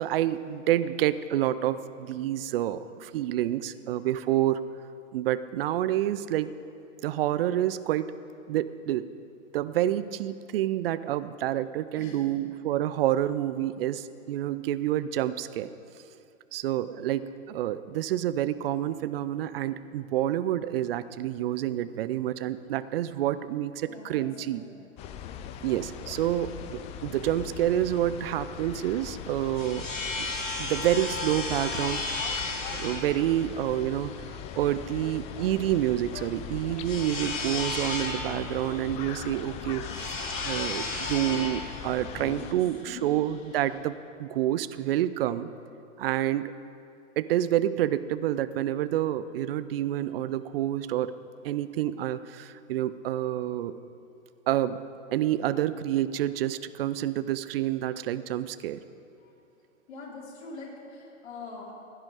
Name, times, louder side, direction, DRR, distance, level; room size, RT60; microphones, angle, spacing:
voice 1, 0.0-4.6 5.1-6.5 7.0-8.1 8.5-9.1 9.5-15.7 16.5-24.6 25.6-30.3 30.6-32.0 32.7-34.1 34.6-40.1 40.4-43.9 44.2-45.5 46.0-46.5 47.2-51.1 51.4-53.7 54.5-54.8 55.1-58.8, right 12 dB, 45° right, 14 dB, 0.6 m, -28 dB
voice 2, 12.0-12.4 23.9-24.7 26.4-26.9 42.2-43.1 59.2-59.3 59.9-61.7, left 4 dB, 55° left, -3 dB, 3.4 m, -44 dB
sound 1, 25.0-42.5, left 8 dB, 15° left, 0.4 m, -40 dB
sound 2, 29.2-43.8, left 3 dB, 70° left, 2.9 m, -35 dB
16.0 x 10.5 x 4.8 m, 2.5 s
figure-of-eight pair, 105°, 39 cm